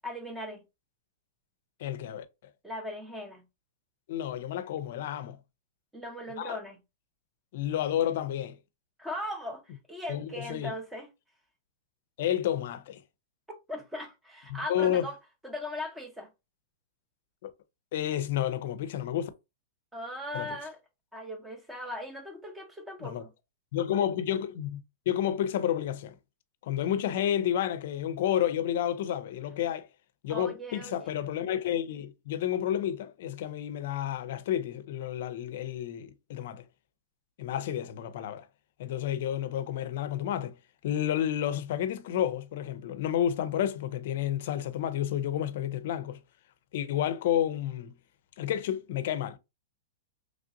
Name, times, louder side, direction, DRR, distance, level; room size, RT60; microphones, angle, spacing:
voice 1, 0.0-0.6 2.6-3.4 5.9-6.8 9.0-11.1 13.7-15.2 15.4-16.3 19.9-20.8 21.1-23.3 30.3-31.1, left 1 dB, 5° right, 0.8 m, -39 dB
voice 2, 1.8-2.3 4.1-5.4 6.4-6.6 7.5-8.6 10.1-10.7 12.2-13.0 14.5-15.1 17.4-17.5 17.9-19.3 20.3-20.5 23.0-23.3 23.7-24.8 25.1-26.2 26.6-29.9 30.2-36.6 37.4-38.4 38.8-40.5 40.8-46.2 46.7-47.9 48.4-49.4, left 10 dB, 65° left, 0.4 m, -30 dB
3.2 x 2.5 x 2.5 m
hypercardioid pair, 135°, 0 cm